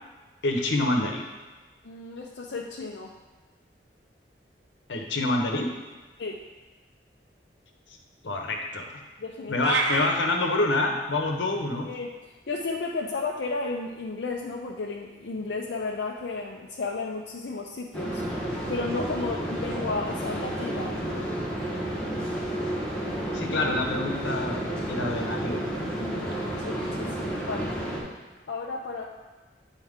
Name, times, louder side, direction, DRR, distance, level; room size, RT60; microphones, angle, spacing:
voice 1, 0.4-1.2 4.9-5.7 8.2-9.0 9.5-11.9 23.3-25.6, left 2 dB, 90° left, 2 dB, 1.0 m, -27 dB
voice 2, 1.8-3.1 6.2-6.4 9.2-9.8 11.9-12.1 12.5-18.2 18.7-21.0 26.0-27.7 28.5-29.0, left 3 dB, 70° left, -1 dB, 0.5 m, -33 dB
sound 1, 9.6-10.1, right 3 dB, 80° right, 0.7 m, -25 dB
sound 2, 17.9-28.0, right 1 dB, 5° left, 1.4 m, -31 dB
9.3 x 4.4 x 3.6 m, 1.3 s
head